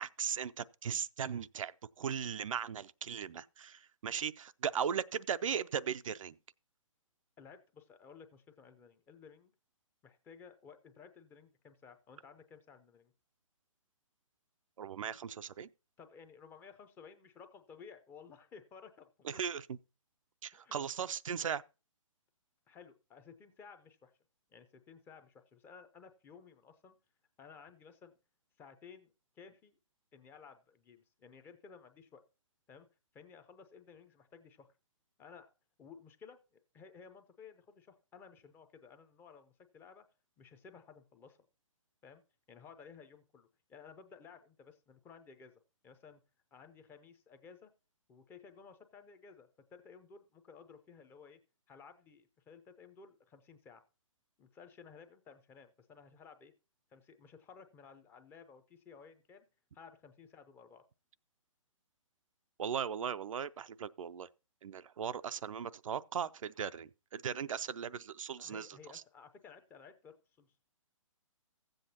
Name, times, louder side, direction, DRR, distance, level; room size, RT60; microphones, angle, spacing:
voice 1, 0.0-1.7 2.0-6.3 14.8-15.7 19.2-19.6 20.4-21.6 62.6-64.3 64.6-68.7, right 8 dB, 75° right, 0.4 m, -38 dB
voice 2, 7.4-9.5 10.0-13.1 16.0-19.5 20.5-20.7 22.7-24.1 24.5-27.0 27.4-28.2 28.6-29.8 30.1-32.2 32.7-32.9 33.1-34.7 35.2-35.5 35.8-40.1 40.4-41.4 42.0-42.2 42.5-45.5 45.8-46.2 46.5-47.7 48.1-51.4 51.7-53.8 54.4-56.5 56.9-59.5 59.7-60.8 68.4-70.6, left 6 dB, 10° left, 0.5 m, -56 dB
15.5 x 7.8 x 2.8 m
hypercardioid pair, 145°, 17 cm